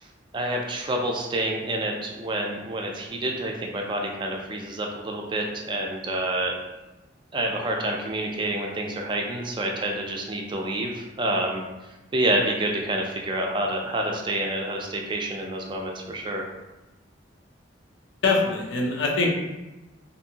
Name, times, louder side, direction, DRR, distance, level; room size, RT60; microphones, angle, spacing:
voice 1, 0.3-6.5 7.3-11.6 12.1-16.5, right 1 dB, 25° right, 0 dB, 0.4 m, -28 dB
voice 2, 18.2-19.3, left 3 dB, 85° left, 0 dB, 0.6 m, -23 dB
2.6 x 2.5 x 2.7 m, 1.0 s
head